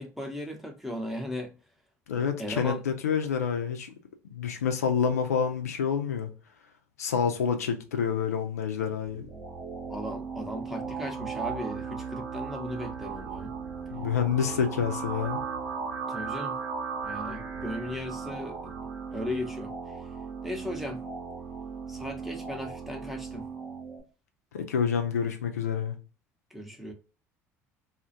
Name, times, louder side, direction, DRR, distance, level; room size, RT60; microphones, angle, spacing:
voice 1, 0.0-1.6 2.2-2.8 9.9-13.5 16.1-16.6 17.0-19.7 20.4-21.1 21.9-23.5 26.5-26.9, left 1 dB, ahead, 0.7 m, -37 dB
voice 2, 2.1-3.9 4.3-6.3 7.0-9.2 13.9-15.4 24.5-26.0, left 7 dB, 80° left, 0.4 m, -28 dB
sound 1, 9.0-24.0, right 5 dB, 70° right, 0.8 m, -37 dB
2.3 x 2.1 x 2.5 m
figure-of-eight pair, 60°, 8 cm